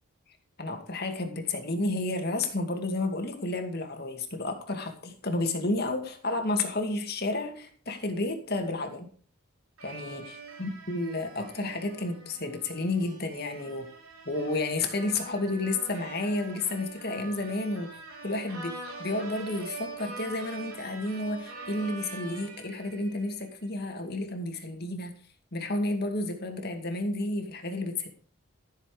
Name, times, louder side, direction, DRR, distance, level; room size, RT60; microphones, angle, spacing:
voice 1, 0.6-9.1 9.8-10.2 10.6-13.9 14.3-17.9 18.2-25.1 25.5-28.1, left 2 dB, 45° left, 4 dB, 2.4 m, -31 dB
sound 1, 9.8-23.5, right 3 dB, 85° right, 5.0 m, -44 dB
14.5 x 7.4 x 5.1 m, 0.43 s
head